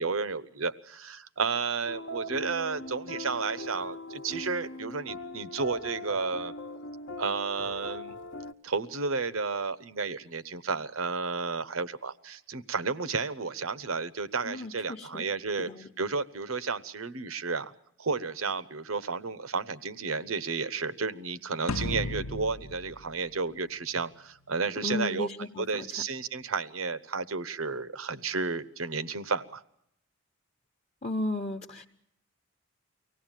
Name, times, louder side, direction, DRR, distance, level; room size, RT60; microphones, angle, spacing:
voice 1, 0.0-6.5 7.2-8.2 8.6-15.7 16.0-17.7 18.0-25.3 25.6-29.6, right 4 dB, 80° right, 15 dB, 1.0 m, -32 dB
sound 1, 1.8-8.5, equal, 60° left, 0.9 m, -40 dB
voice 2, 14.4-15.3 15.6-15.9 24.8-25.9 31.0-31.9, left 2 dB, 30° left, 1 dB, 0.9 m, -34 dB
sound 2, 21.7-24.1, left 2 dB, 85° left, 0.9 m, -35 dB
24.5 x 17.5 x 9.1 m, 0.75 s
head